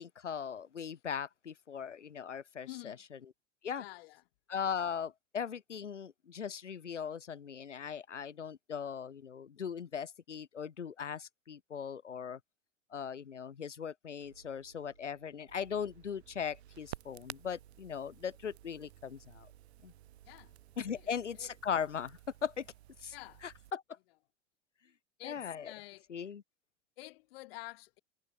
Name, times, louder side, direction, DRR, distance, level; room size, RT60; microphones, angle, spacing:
voice 1, 0.0-3.3 3.6-3.9 4.5-12.4 12.9-19.5 19.8-19.9 20.8-22.7 23.0-23.1 23.4-23.8 25.2-25.7 26.1-26.4, left 7 dB, 85° left, 1.3 m, -39 dB
voice 2, 2.7-3.0 3.8-4.2 20.3-20.5 21.4-21.5 23.1-23.4 25.2-26.0 27.0-28.0, left 20 dB, 55° left, 0.9 m, -48 dB
sound 1, 14.2-22.2, right 4 dB, 90° right, 3.9 m, -67 dB
Crackle, 15.5-23.7, right 15 dB, 65° right, 1.5 m, -53 dB
figure-of-eight pair, 90°, 35 cm